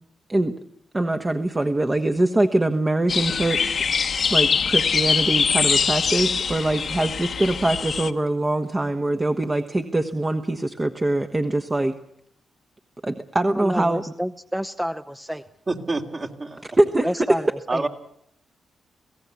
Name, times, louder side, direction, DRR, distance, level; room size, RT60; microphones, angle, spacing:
voice 1, 0.9-3.8 4.3-11.9 13.0-14.0 16.8-17.3, right 2 dB, 25° right, 5 dB, 1.3 m, -23 dB
sound 1, 3.1-8.1, left 6 dB, 60° left, 1.1 m, -23 dB
voice 2, 13.6-15.4 17.0-17.9, equal, 5° right, 8 dB, 0.8 m, -29 dB
voice 3, 15.7-16.6 17.7-17.9, right 3 dB, 45° right, 2 dB, 3.0 m, -27 dB
25.5 x 16.5 x 8.3 m, 0.75 s
supercardioid pair, 45°, 0 cm